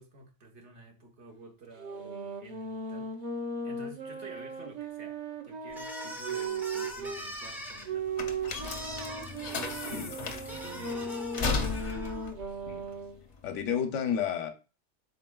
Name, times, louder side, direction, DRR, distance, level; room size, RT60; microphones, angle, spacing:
voice 1, 0.0-8.1 8.4-8.8 9.5-11.9, right 3 dB, 75° right, 1.3 m, -50 dB
sound 1, 1.7-7.2 7.8-13.2, right 3 dB, 45° right, 0.7 m, -37 dB
sound 2, 5.7-12.3, equal, 5° right, 0.4 m, -42 dB
sound 3, 6.9-13.7, left 4 dB, 50° left, 0.5 m, -36 dB
voice 2, 13.4-14.5, left 8 dB, 90° left, 1.0 m, -31 dB
4.4 x 4.0 x 2.2 m
omnidirectional pair, 1.2 m